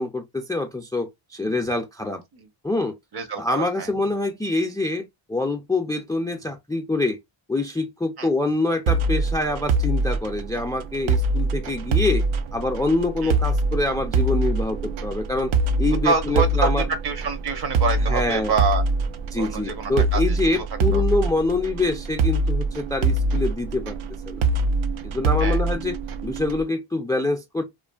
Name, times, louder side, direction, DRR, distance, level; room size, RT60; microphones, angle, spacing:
voice 1, 0.0-2.2 2.6-2.9 3.4-7.2 7.5-12.2 12.5-15.5 15.8-16.8 18.1-18.5 19.3-24.0 24.3-24.4 25.0-26.0 26.2-27.6, left 2 dB, 10° left, 0.3 m, -25 dB
voice 2, 3.1-3.9 8.2-8.3 13.2-13.3 16.0-16.7 17.0-18.8 19.4-20.4 20.9-21.0 25.4-25.6, right 5 dB, 55° right, 0.8 m, -26 dB
sound 1, 8.9-26.6, right 2 dB, 80° right, 0.5 m, -24 dB
2.5 x 2.4 x 2.3 m
cardioid pair, 75°, 47 cm